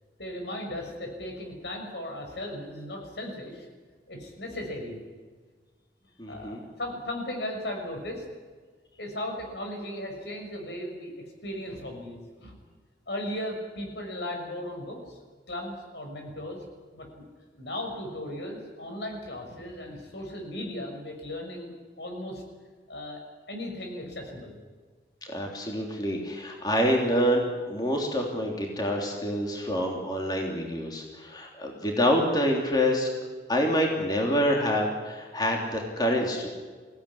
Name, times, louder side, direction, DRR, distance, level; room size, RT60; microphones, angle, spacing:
voice 1, 0.2-3.7 4.1-5.0 6.3-8.2 9.0-12.5 13.1-15.2 15.5-16.6 16.9-17.2 17.6-22.4 22.9-23.2 23.5-24.6, left 1 dB, 85° left, 3 dB, 6.1 m, -36 dB
voice 2, 6.2-6.6 25.2-33.1 33.5-36.5, equal, 25° left, 0 dB, 3.2 m, -27 dB
22.5 x 17.0 x 9.9 m, 1.5 s
head